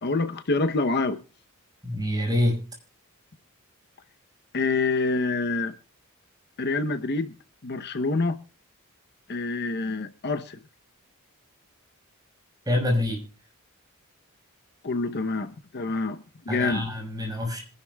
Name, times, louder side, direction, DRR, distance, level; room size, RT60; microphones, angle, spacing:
voice 1, 0.0-1.2 4.5-5.7 6.6-7.3 7.6-8.4 9.3-10.6 14.8-16.9, left 3 dB, 50° left, 0.8 m, -27 dB
voice 2, 1.8-2.6 12.7-13.2 16.5-17.6, left 1 dB, 20° right, 5.4 m, -26 dB
25.5 x 11.0 x 2.3 m
head